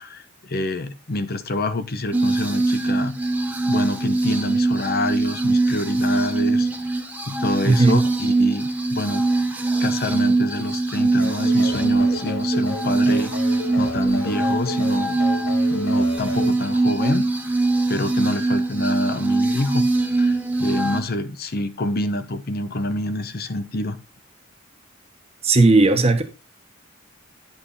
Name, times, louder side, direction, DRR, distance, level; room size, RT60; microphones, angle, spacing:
voice 1, 0.0-3.2 3.7-6.7 7.3-9.2 9.8-15.2 15.7-17.6 17.9-24.0, left 1 dB, 50° left, 0.8 m, -27 dB
sound 1, 2.1-21.0, right 2 dB, 10° right, 1.0 m, -22 dB
voice 2, 7.6-8.0 25.4-26.2, right 3 dB, 30° right, 1.1 m, -15 dB
sound 2, 11.2-16.5, left 2 dB, 75° left, 1.9 m, -33 dB
9.7 x 5.7 x 4.1 m
head